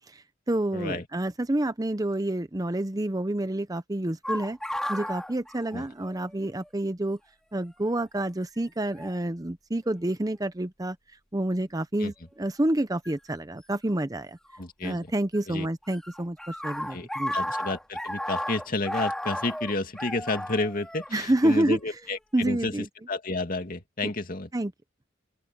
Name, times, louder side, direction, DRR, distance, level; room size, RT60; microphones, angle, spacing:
voice 1, 0.1-4.6 4.9-7.2 7.5-11.0 11.3-14.4 14.8-17.4 21.1-21.8 22.3-22.9 24.5-24.7, right 1 dB, 20° right, 0.7 m, -28 dB
voice 2, 0.7-1.1 5.7-5.8 12.0-12.1 14.6-15.1 15.5-15.7 16.9-22.7 23.1-24.5, left 2 dB, 45° left, 2.4 m, -31 dB
sound 1, 4.2-6.3 6.6-6.7 7.7-8.0 9.0-9.2 9.9-10.4 13.0-13.1 14.5-15.4 15.6-22.2, left 1 dB, 5° left, 2.4 m, -34 dB
open air
head